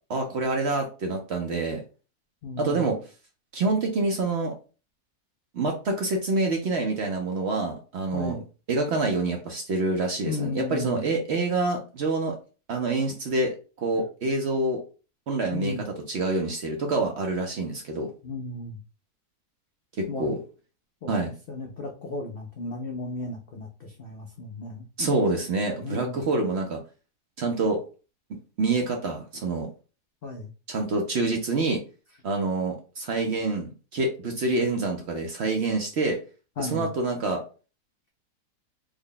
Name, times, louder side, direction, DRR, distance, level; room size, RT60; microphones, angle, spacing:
voice 1, 0.1-1.8 2.6-3.0 3.5-4.5 5.5-8.4 8.7-12.4 12.7-13.5 13.8-14.8 15.3-18.1 20.0-20.4 21.1-21.3 25.0-26.8 27.4-27.8 28.3-29.7 30.7-31.8 32.2-36.2 36.6-37.4, right 3 dB, 60° right, 3 dB, 0.7 m, -27 dB
voice 2, 2.4-2.9 8.1-8.4 10.2-11.0 15.5-15.8 18.2-18.8 20.1-20.3 21.0-21.1 21.5-24.9 25.7-26.2 30.2-30.5 36.6-36.9, left 3 dB, 80° left, 2 dB, 0.5 m, -34 dB
3.5 x 2.1 x 3.7 m, 0.34 s
omnidirectional pair, 1.7 m